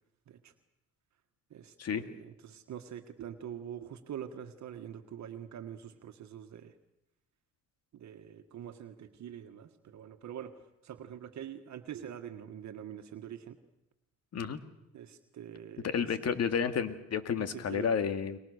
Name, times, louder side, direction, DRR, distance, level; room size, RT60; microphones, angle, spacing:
voice 1, 1.5-6.7 7.9-13.6 14.9-16.2 17.4-17.9, right 9 dB, 65° right, 6 dB, 1.7 m, -45 dB
voice 2, 15.8-18.4, left 7 dB, 55° left, 9 dB, 2.2 m, -31 dB
30.0 x 22.5 x 6.7 m, 0.89 s
cardioid pair, 90°, 30 cm